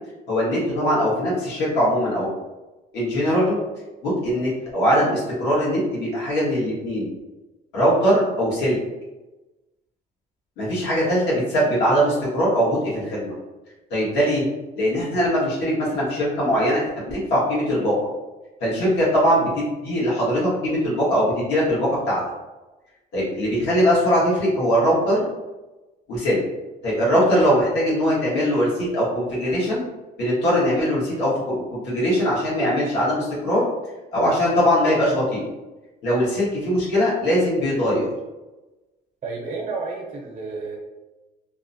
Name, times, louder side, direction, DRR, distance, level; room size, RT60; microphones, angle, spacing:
voice 1, 0.3-2.3 2.9-3.6 4.0-7.1 7.7-8.8 10.6-13.4 13.9-14.4 14.8-17.9 18.6-22.2 23.1-25.3 26.1-26.4 26.8-29.8 30.2-33.7 34.1-35.4 36.0-38.1, equal, 85° left, -7 dB, 1.4 m, -21 dB
voice 2, 39.2-40.8, right 4 dB, 50° right, 0 dB, 0.6 m, -31 dB
2.8 x 2.1 x 2.6 m, 1.1 s
cardioid pair, 110°, 17 cm